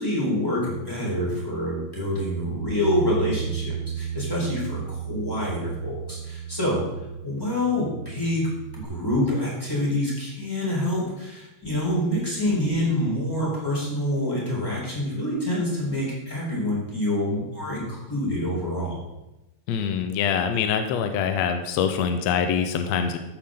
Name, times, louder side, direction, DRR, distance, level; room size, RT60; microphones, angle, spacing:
voice 1, 0.0-6.8 7.2-19.0, left 1 dB, 5° left, -5 dB, 4.2 m, -26 dB
Bass guitar, 2.6-8.8, right 7 dB, 50° right, 2.6 m, -33 dB
voice 2, 19.7-23.2, left 7 dB, 70° left, 7 dB, 1.7 m, -24 dB
14.0 x 9.2 x 3.8 m, 0.97 s
omnidirectional pair, 3.8 m